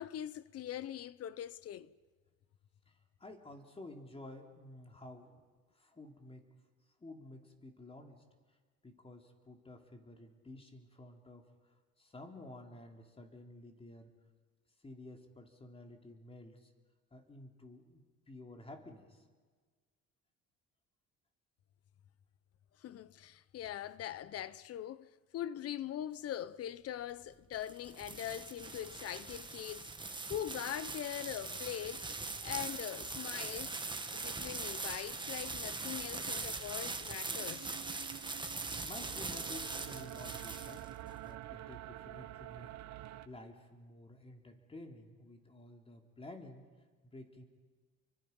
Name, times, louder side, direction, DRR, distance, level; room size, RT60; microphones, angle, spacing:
voice 1, 0.0-1.9 22.8-32.2 32.4-33.8 34.1-37.7, left 11 dB, 55° left, 0.8 m, -42 dB
voice 2, 2.9-5.4 5.7-6.5 6.8-8.6 8.8-14.1 14.8-16.7 17.1-19.3 38.6-42.7 43.0-46.6 47.0-47.4, left 2 dB, 20° left, 3.3 m, -52 dB
sound 1, 27.3-41.1, right 3 dB, 15° right, 1.7 m, -41 dB
sound 2, 37.4-43.3, right 14 dB, 65° right, 1.0 m, -48 dB
30.0 x 24.0 x 5.5 m
cardioid pair, 115°, 29 cm